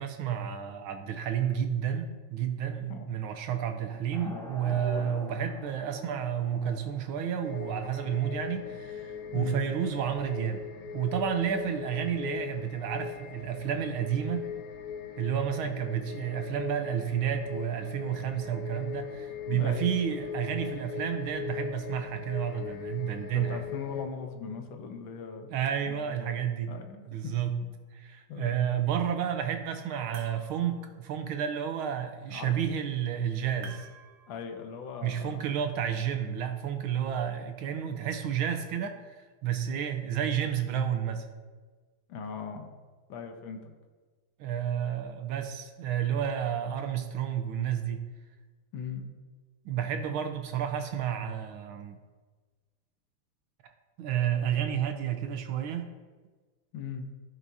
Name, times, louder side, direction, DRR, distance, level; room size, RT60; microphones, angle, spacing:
voice 1, 0.0-10.6 10.9-14.5 15.2-23.7 25.5-26.7 27.1-27.6 27.9-33.9 35.0-41.3 44.4-48.0 49.6-52.0 54.0-55.9, right 9 dB, 80° right, 7 dB, 1.7 m, -31 dB
sound 1, 4.1-9.3, right 1 dB, ahead, 1.5 m, -49 dB
voice 2, 4.2-5.1 9.3-9.6 19.4-19.9 23.3-25.5 25.9-26.4 26.7-27.3 27.6-27.7 28.3-28.6 32.3-32.5 34.3-35.4 42.1-42.7 43.1-43.7 48.7-49.0 56.7-57.1, left 5 dB, 70° left, 4 dB, 1.6 m, -39 dB
sound 2, 7.4-24.0, left 6 dB, 55° left, 1.2 m, -40 dB
sound 3, 29.9-30.9 33.6-34.7, right 5 dB, 60° right, 1.3 m, -49 dB
15.0 x 6.0 x 2.7 m, 1.4 s
omnidirectional pair, 2.2 m